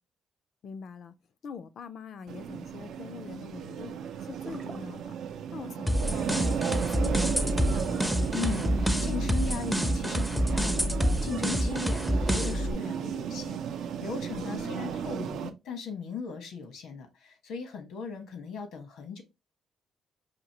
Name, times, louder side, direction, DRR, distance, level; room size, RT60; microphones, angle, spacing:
voice 1, 0.6-1.1 1.4-5.1 5.5-8.1 14.3-14.7, left 6 dB, 60° left, 0.4 m, -43 dB
sound 1, 2.3-15.5, right 8 dB, 75° right, 0.4 m, -34 dB
sound 2, 4.2-5.6 5.9-6.1 7.2-8.5 10.3-10.7, right 4 dB, 45° right, 0.8 m, -49 dB
sound 3, 5.9-12.7, equal, ahead, 0.4 m, -28 dB
voice 2, 8.3-10.9 11.2-19.2, left 6 dB, 85° left, 1.1 m, -38 dB
5.1 x 2.6 x 2.9 m
cardioid pair, 110°, 0 cm